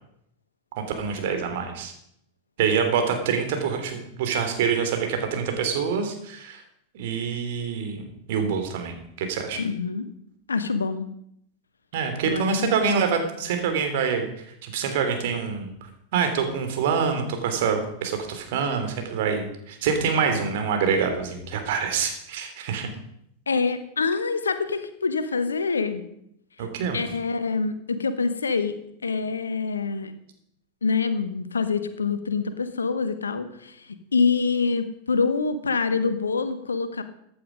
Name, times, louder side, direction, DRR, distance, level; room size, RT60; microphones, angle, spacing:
voice 1, 0.8-1.9 2.6-6.6 6.9-9.6 11.9-15.7 16.1-22.9 26.6-27.0, right 6 dB, 50° right, 5 dB, 3.0 m, -26 dB
voice 2, 9.6-10.1 10.5-11.1 12.3-12.7 23.5-26.0 26.6-26.7 26.9-28.8 29.0-30.1 30.8-37.0, left 4 dB, 75° left, 11 dB, 1.2 m, -26 dB
15.0 x 10.0 x 5.2 m, 0.73 s
figure-of-eight pair, 90°, 0 cm